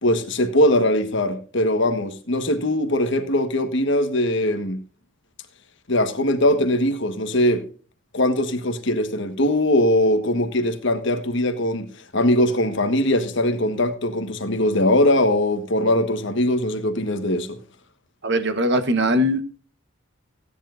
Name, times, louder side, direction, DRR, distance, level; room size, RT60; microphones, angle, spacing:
voice 1, 0.0-4.8 5.9-7.6 8.1-11.9 12.1-17.6, left 1 dB, 60° left, 1.5 m, -21 dB
voice 2, 18.2-19.6, equal, 55° right, 1.1 m, -21 dB
16.5 x 10.0 x 2.6 m
head